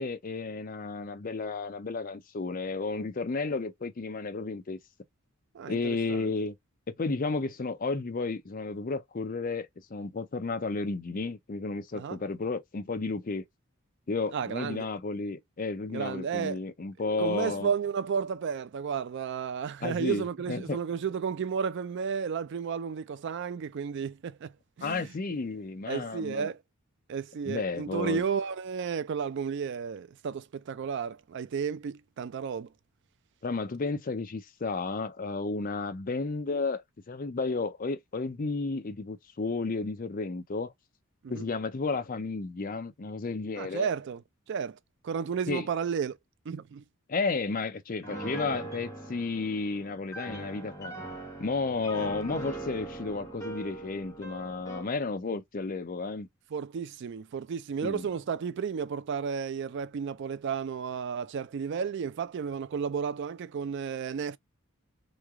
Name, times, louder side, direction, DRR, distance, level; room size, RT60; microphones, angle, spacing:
voice 1, 0.0-4.8 5.7-6.6 6.9-13.4 14.1-17.7 19.8-20.8 24.8-26.5 27.4-28.2 33.4-40.7 41.3-43.9 45.5-45.6 47.1-50.9 51.4-56.3 57.8-58.1, left 3 dB, 40° left, 0.5 m, -32 dB
voice 2, 5.5-6.3 11.9-12.2 14.3-14.9 15.9-16.6 17.2-24.5 24.8-25.2 25.9-26.6 27.1-32.7 41.2-41.5 43.6-44.2 44.5-44.8 45.0-46.2 46.5-46.8 51.9-52.1 56.5-64.4, right 6 dB, 55° right, 0.3 m, -33 dB
Piano, 48.0-55.0, right 2 dB, 15° left, 0.8 m, -41 dB
3.1 x 2.2 x 3.5 m
head